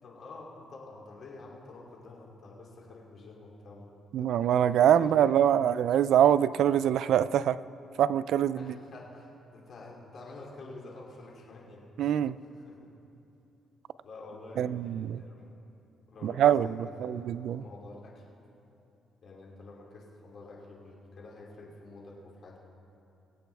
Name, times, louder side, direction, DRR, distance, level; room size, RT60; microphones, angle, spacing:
voice 1, 0.0-3.9 4.2-4.3 4.9-5.6 8.6-12.9 14.0-15.5 16.1-18.2 19.2-22.6, left 2 dB, 60° left, -2 dB, 2.8 m, -48 dB
voice 2, 4.1-7.6 8.0-8.7 12.0-12.4 14.6-15.2 16.2-17.6, right 10 dB, 75° right, 16 dB, 0.3 m, -24 dB
24.5 x 8.4 x 3.5 m, 2.9 s
cardioid pair, 90°, 0 cm